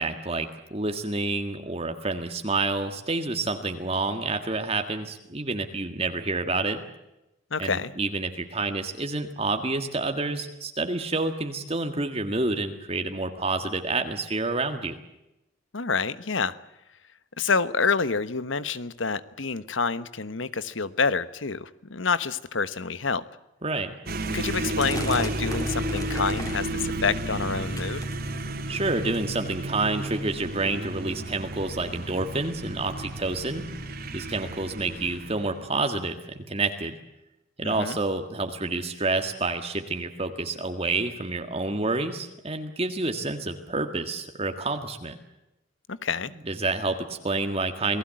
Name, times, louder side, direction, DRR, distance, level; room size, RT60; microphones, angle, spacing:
voice 1, 0.0-6.8 7.6-15.0 23.6-23.9 28.7-33.6 34.1-37.0 37.6-45.2 46.3-48.0, right 3 dB, 30° right, 6 dB, 1.8 m, -28 dB
voice 2, 7.5-7.9 15.7-16.5 17.4-23.2 24.3-28.0 37.6-38.0 45.9-46.3, left 5 dB, 80° left, 15 dB, 1.2 m, -27 dB
sound 1, 24.1-35.8, right 1 dB, 50° right, 3.0 m, -32 dB
sound 2, 24.8-26.7 27.1-27.5 27.8-28.6 29.1-29.5 30.2-30.3 30.5-30.7 31.3-31.4 32.1-32.2, left 1 dB, 20° left, 3.6 m, -38 dB
28.5 x 19.0 x 7.7 m, 0.92 s
head